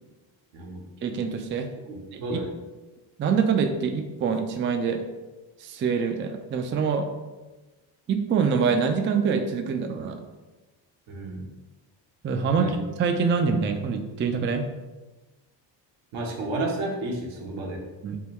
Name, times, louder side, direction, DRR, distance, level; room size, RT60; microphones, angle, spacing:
voice 1, 1.0-1.7 2.1-2.2 3.2-5.0 5.6-7.1 8.1-10.2 12.2-14.7 18.0-18.2, right 5 dB, 25° right, 5 dB, 0.3 m, -25 dB
voice 2, 1.9-2.5 11.1-11.4 12.5-12.7 16.1-17.8, right 2 dB, 75° right, 0 dB, 1.0 m, -31 dB
3.7 x 2.2 x 4.2 m, 1.2 s
cardioid pair, 80°, 48 cm